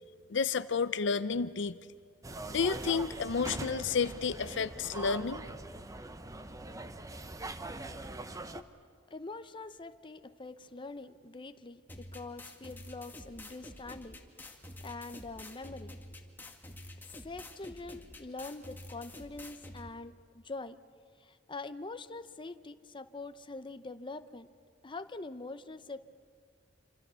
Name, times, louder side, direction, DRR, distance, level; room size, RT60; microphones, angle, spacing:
voice 1, 0.3-1.8 2.5-5.4, left 5 dB, 70° left, 14 dB, 0.6 m, -31 dB
interior underground subway metro train several stations, 2.2-8.6, right 2 dB, 20° right, 0.8 m, -42 dB
voice 2, 9.1-11.8 12.1-14.2 14.5-15.9 17.2-20.8 21.2-24.5 24.8-26.0, left 3 dB, 25° left, 10 dB, 0.8 m, -44 dB
sound 1, 11.9-19.9, left 1 dB, 10° left, 2.1 m, -48 dB
27.0 x 26.0 x 6.9 m, 2.2 s
head